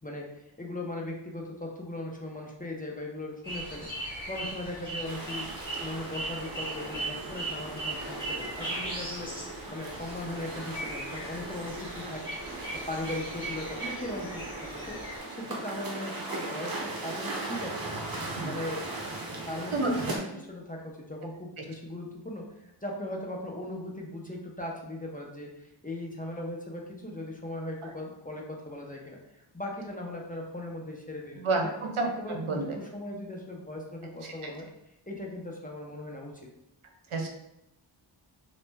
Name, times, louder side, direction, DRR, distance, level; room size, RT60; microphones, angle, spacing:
voice 1, 0.0-3.9 4.3-5.4 5.8-12.2 12.9-15.0 15.3-17.9 18.5-18.8 19.2-31.7 32.2-34.7 35.1-36.3, left 1 dB, 20° left, -2 dB, 0.6 m, -38 dB
sound 1, 3.4-15.2, right 2 dB, 10° right, 1.3 m, -38 dB
sound 2, 5.0-20.2, right 2 dB, 45° right, 0.7 m, -39 dB
voice 2, 31.4-32.7 34.4-34.5 37.1-37.3, right 3 dB, 85° right, 2 dB, 0.6 m, -29 dB
3.1 x 2.1 x 3.3 m, 0.87 s
wide cardioid pair, 45°, 49 cm